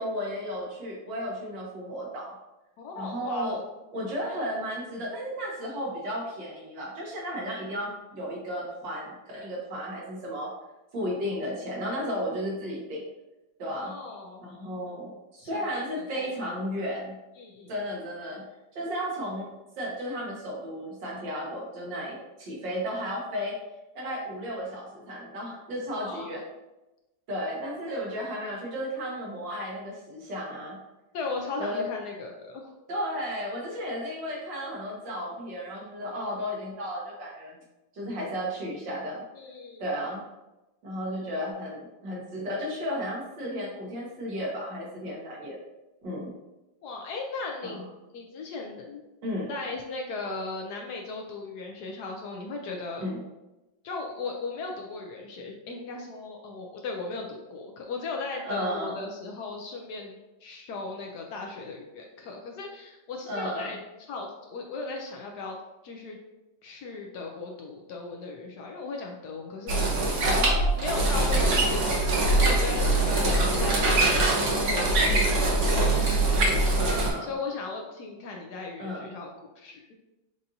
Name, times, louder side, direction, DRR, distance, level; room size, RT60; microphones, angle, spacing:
voice 1, 0.0-2.3 3.0-3.6 3.9-10.5 10.9-13.0 13.6-13.9 14.4-17.2 17.7-18.4 18.7-19.5 19.8-23.6 24.0-26.4 27.3-30.8 31.6-31.9 32.9-37.6 37.9-39.2 39.8-40.2 40.8-45.6 46.0-46.3 47.6-47.9 49.2-49.5 53.0-53.2 58.5-59.0 63.3-63.8 70.2-70.9 73.0-73.6 76.7-77.3 78.8-79.1, equal, 75° right, -3 dB, 1.8 m, -34 dB
voice 2, 2.8-3.5 13.6-14.4 15.4-15.8 16.1-16.5 17.4-17.7 26.0-26.3 31.1-32.7 39.3-39.9 46.8-47.9 48.1-49.0 49.5-53.1 53.8-60.2 60.4-63.8 64.1-65.6 65.8-66.2 66.6-70.1 70.8-74.3 74.7-76.0 76.4-76.8 77.2-79.3 79.6-79.9, left 3 dB, 70° left, 1 dB, 1.0 m, -37 dB
sound 1, 69.7-77.1, right 2 dB, 50° right, 1.0 m, -23 dB
6.7 x 2.5 x 2.7 m, 1.0 s
omnidirectional pair, 2.0 m